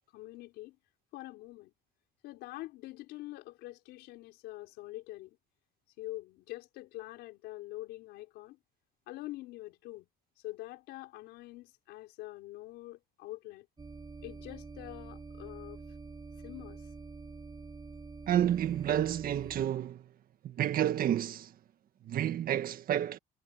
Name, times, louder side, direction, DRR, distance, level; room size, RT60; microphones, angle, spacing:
voice 1, 0.1-0.8 1.1-1.7 2.2-5.4 6.0-8.6 9.1-10.1 10.4-13.7 14.2-15.8 16.4-16.9, left 18 dB, 90° left, 4.8 m, -45 dB
sound 1, 13.8-19.7, right 4 dB, 25° right, 4.7 m, -47 dB
voice 2, 18.3-20.0 20.4-21.5 22.1-23.2, right 11 dB, 60° right, 1.8 m, -30 dB
cardioid pair, 110°, 17 cm